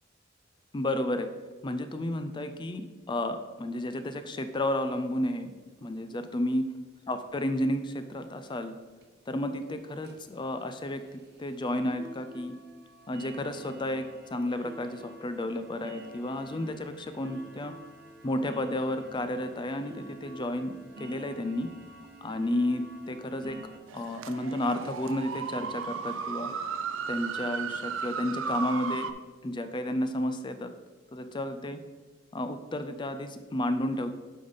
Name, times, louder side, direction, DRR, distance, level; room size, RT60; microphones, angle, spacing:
voice 1, 0.7-1.3 1.6-5.5 5.8-6.6 7.1-8.7 9.3-12.5 13.1-14.0 14.3-17.7 18.2-20.7 21.0-21.7 22.2-23.6 23.9-26.5 27.1-29.1 29.4-30.7 31.1-31.8 32.3-34.2, left 1 dB, 25° left, 9 dB, 0.4 m, -32 dB
sound 1, 4.1-4.2 4.4-4.5 4.7-4.9 5.2-5.6 6.3-6.4 6.9-7.0 7.4-7.5 7.9-8.0 8.5-8.6 9.0-9.2 9.6-9.7 10.0-23.8, right 1 dB, 55° right, 1.0 m, -49 dB
sound 2, 23.9-29.1, right 6 dB, 70° right, 0.5 m, -35 dB
8.3 x 4.0 x 5.4 m, 1.3 s
head